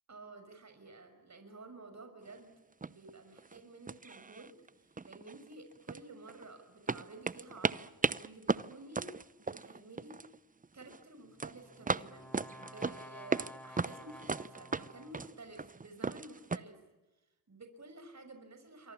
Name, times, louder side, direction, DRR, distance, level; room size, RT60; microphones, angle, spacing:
voice 1, 0.1-2.5 2.8-4.6 4.8-7.9 8.2-9.1 9.4-10.2 10.7-16.8 17.5-18.9, right 2 dB, 35° right, 7 dB, 5.9 m, -52 dB
sound 1, 2.3-2.4 2.8-3.1 3.4-3.6 3.9-4.7 5.0-6.4 6.9-10.4 10.6-11.0 11.4-13.5 13.8-16.6, right 4 dB, 15° right, 0.8 m, -36 dB
Brass instrument, 11.3-15.5, equal, 5° left, 3.2 m, -52 dB
28.0 x 24.5 x 7.1 m, 1.1 s
supercardioid pair, 55°, 49 cm